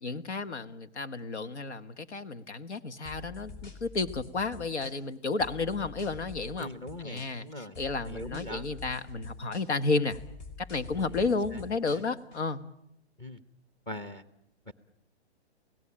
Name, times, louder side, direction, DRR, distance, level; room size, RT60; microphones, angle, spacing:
voice 1, 0.0-6.7 7.0-10.2 10.6-12.6, left 3 dB, 90° left, 11 dB, 1.7 m, -32 dB
sound 1, 3.0-5.1 5.4-7.5 7.7-9.8 10.1-12.4, left 4 dB, 40° left, 4.6 m, -46 dB
voice 2, 6.6-7.8 8.1-8.7 10.9-11.6 11.9-12.0 13.2-13.4 13.9-14.2 14.7-14.8, left 1 dB, 15° left, 11 dB, 1.0 m, -41 dB
28.5 x 17.5 x 8.8 m, 0.81 s
hypercardioid pair, 155°, 33 cm